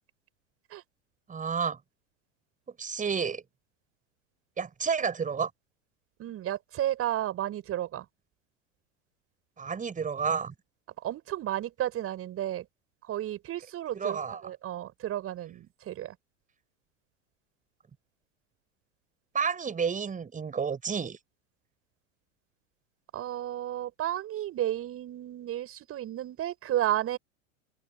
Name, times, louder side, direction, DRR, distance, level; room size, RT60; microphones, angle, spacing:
voice 1, 1.3-1.8 2.8-3.4 4.6-5.5 9.6-10.5 13.9-14.4 19.3-21.2, right 6 dB, 20° right, 5.8 m, -30 dB
voice 2, 6.2-8.1 11.0-12.7 13.0-16.2 23.1-27.2, right 12 dB, 35° right, 6.0 m, -32 dB
open air
hypercardioid pair, 90°, 38 cm